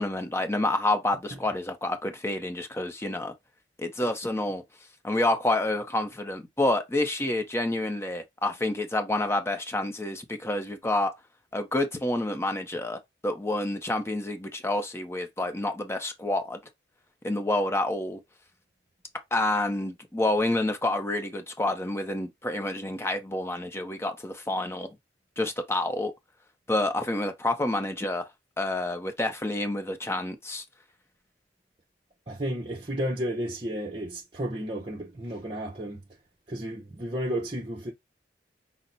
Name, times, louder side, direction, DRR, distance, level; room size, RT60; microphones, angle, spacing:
voice 1, 0.0-3.3 3.8-4.6 5.0-11.1 11.5-16.6 17.2-18.2 19.3-24.9 25.4-26.1 26.7-28.3 28.6-30.6, left 1 dB, 15° left, 0.7 m, -28 dB
voice 2, 32.3-36.0 36.5-37.9, equal, 30° right, 0.8 m, -32 dB
5.8 x 2.1 x 3.9 m
head